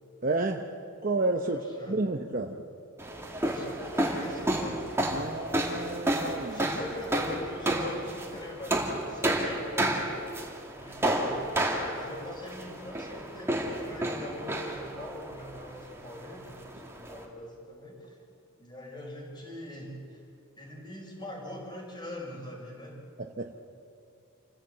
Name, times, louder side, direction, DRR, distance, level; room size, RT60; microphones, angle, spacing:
voice 1, 0.2-0.7 1.0-1.6 1.9-2.6 5.1-6.6 23.4-23.6, right 2 dB, 40° right, 4 dB, 0.9 m, -30 dB
voice 2, 1.5-2.1 3.4-5.5 6.2-11.4 11.8-18.2 18.6-20.2 20.6-23.0, left 1 dB, 20° left, -1 dB, 5.2 m, -43 dB
sound 1, 3.0-17.2, right 1 dB, 10° right, 2.5 m, -31 dB
28.0 x 16.0 x 7.8 m, 2.5 s
head